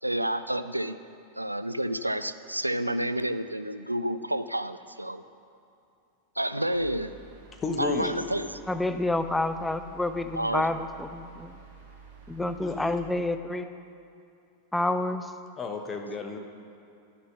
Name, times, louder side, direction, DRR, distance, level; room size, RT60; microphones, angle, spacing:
voice 1, 0.0-1.0 1.4-5.2 6.4-7.2 7.8-8.5 10.3-10.7, right 1 dB, 85° right, 12 dB, 0.3 m, -29 dB
sound 1, 6.7-13.0, right 4 dB, 50° right, 1.9 m, -50 dB
voice 2, 7.5-8.3 12.4-13.0 15.6-16.4, left 4 dB, 20° left, 4 dB, 1.0 m, -32 dB
voice 3, 8.7-11.6 12.3-13.7 14.7-15.3, left 2 dB, 5° left, 9 dB, 0.5 m, -29 dB
11.0 x 6.7 x 5.9 m, 2.6 s
figure-of-eight pair, 90°, 0 cm